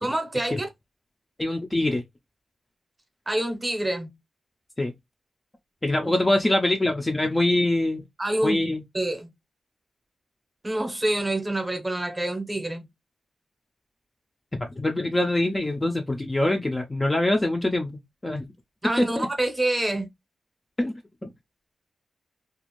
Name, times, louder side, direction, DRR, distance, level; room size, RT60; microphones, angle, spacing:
voice 1, 0.0-0.7 3.3-4.1 6.0-6.1 8.2-8.6 8.9-9.3 10.6-12.9 18.8-20.1, right 1 dB, 15° right, 0.7 m, -27 dB
voice 2, 1.4-2.0 4.8-4.9 5.8-8.0 8.4-8.8 14.6-18.5 19.0-19.3 20.8-20.9, left 1 dB, 15° left, 0.4 m, -24 dB
2.4 x 2.4 x 2.9 m
wide cardioid pair, 150°, 0 cm